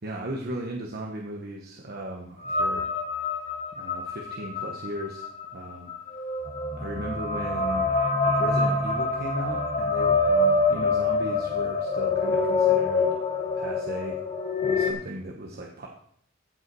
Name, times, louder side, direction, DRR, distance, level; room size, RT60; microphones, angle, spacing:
voice 1, 0.0-2.9 3.7-5.3 5.5-5.9 6.8-7.9 8.2-13.1 13.5-14.2 14.6-15.9, right 1 dB, 50° right, 0 dB, 1.1 m, -36 dB
sound 1, 2.4-14.9, left 3 dB, 30° left, 1.2 m, -25 dB
14.5 x 5.5 x 4.7 m, 0.66 s
head